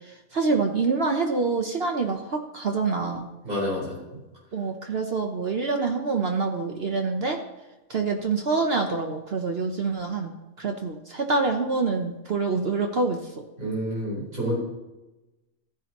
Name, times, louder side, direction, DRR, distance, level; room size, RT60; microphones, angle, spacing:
voice 1, 0.3-3.3 4.5-7.4 7.9-10.3 10.6-13.2, right 4 dB, 50° right, 4 dB, 1.0 m, -26 dB
voice 2, 3.4-4.0 13.6-14.6, equal, 65° right, -6 dB, 4.8 m, -28 dB
14.5 x 10.5 x 3.0 m, 1.1 s
omnidirectional pair, 1.6 m